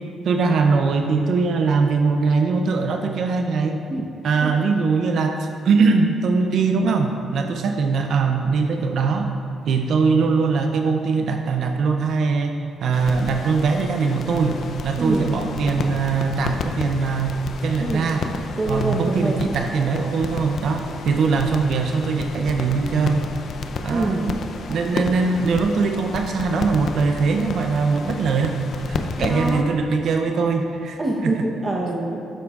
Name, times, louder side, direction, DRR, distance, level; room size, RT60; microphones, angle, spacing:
voice 1, 0.0-3.8 4.2-9.3 9.7-18.2 18.7-23.2 23.8-24.3 24.7-28.6 28.9-31.3, right 4 dB, 65° right, 4 dB, 0.5 m, -21 dB
sound 1, 12.9-29.6, left 4 dB, 60° left, 0.5 m, -32 dB
voice 2, 15.0-15.4 17.8-18.2 18.6-19.5 23.9-24.3 29.2-29.8 31.0-32.2, right 2 dB, 30° right, -2 dB, 0.9 m, -25 dB
12.0 x 8.0 x 2.4 m, 2.6 s
cardioid pair, 90°, 0 cm